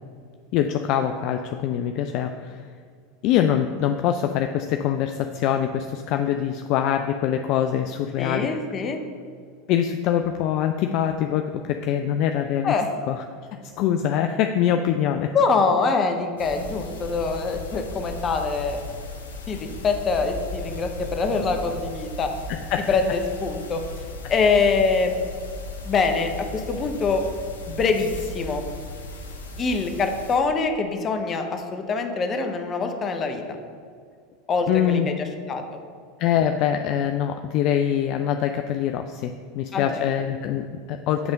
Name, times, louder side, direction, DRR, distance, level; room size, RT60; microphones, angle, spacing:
voice 1, 0.5-2.6 3.2-8.5 9.7-12.7 13.1-13.2 13.8-15.3 22.5-22.8 34.7-35.1 36.2-41.3, left 10 dB, 50° left, 6 dB, 0.3 m, -24 dB
voice 2, 8.2-9.0 12.6-12.9 15.3-18.8 19.5-22.3 22.9-23.8 24.3-25.2 25.9-27.2 27.7-28.1 28.3-28.6 29.6-33.4 34.5-35.2 35.5-35.6 39.7-40.0, left 4 dB, 35° left, 6 dB, 0.8 m, -24 dB
sound 1, 16.4-30.4, left 1 dB, 80° left, 0.9 m, -37 dB
7.9 x 3.5 x 5.1 m, 2.1 s
hypercardioid pair, 85°, 0 cm